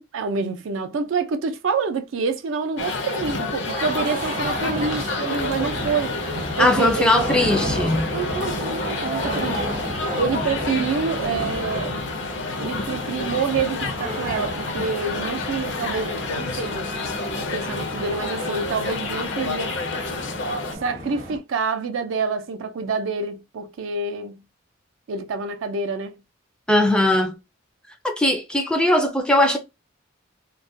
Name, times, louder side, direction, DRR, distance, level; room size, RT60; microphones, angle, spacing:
voice 1, 0.1-6.1 6.6-6.9 8.1-12.0 12.6-16.9 17.4-19.7 20.8-24.4 25.1-26.1, right 4 dB, 70° right, 0.4 m, -27 dB
sound 1, 2.8-20.8, left 3 dB, 65° left, 0.5 m, -29 dB
sound 2, 3.7-21.4, right 1 dB, 45° right, 0.8 m, -33 dB
voice 2, 6.6-8.1 26.7-27.4 28.0-29.6, left 1 dB, 5° left, 0.3 m, -19 dB
2.3 x 2.1 x 2.6 m
head